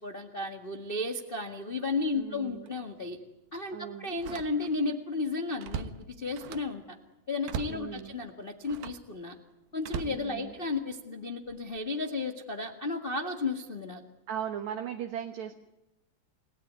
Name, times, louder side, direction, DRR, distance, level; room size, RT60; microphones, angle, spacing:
voice 1, 0.0-3.2 3.5-7.0 7.3-9.4 9.7-14.0, left 3 dB, 30° left, 4 dB, 1.0 m, -33 dB
Slam, 1.9-2.2 2.7-2.8 4.1-4.9 5.3-6.8 7.4-7.9 8.6-9.1 9.8-10.9 11.5-11.8, right 7 dB, 90° right, 3.1 m, -40 dB
voice 2, 2.1-2.7 3.7-4.1 7.7-8.2 10.0-10.5 14.3-15.5, right 9 dB, 60° right, 6 dB, 2.5 m, -38 dB
30.0 x 18.0 x 9.5 m, 0.95 s
omnidirectional pair, 4.1 m